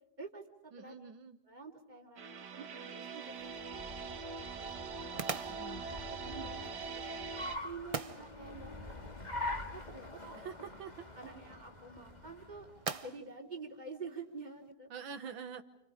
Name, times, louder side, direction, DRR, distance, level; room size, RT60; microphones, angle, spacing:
voice 1, 0.2-0.9 1.4-2.2 2.5-4.4 5.1-5.4 5.7-9.4 9.7-10.4 11.2-12.7 12.9-14.9, right 4 dB, 20° right, 2 dB, 3.4 m, -49 dB
voice 2, 0.7-1.4 5.5-5.8 10.4-10.9 14.9-15.6, right 7 dB, 80° right, 8 dB, 2.0 m, -45 dB
sound 1, 2.2-7.6, right 5 dB, 60° right, 1.9 m, -43 dB
sound 2, 3.0-14.7, right 4 dB, 40° right, 0.5 m, -47 dB
Car, 3.4-13.0, left 2 dB, 20° left, 2.5 m, -45 dB
29.5 x 29.5 x 4.9 m, 0.86 s
omnidirectional pair, 2.1 m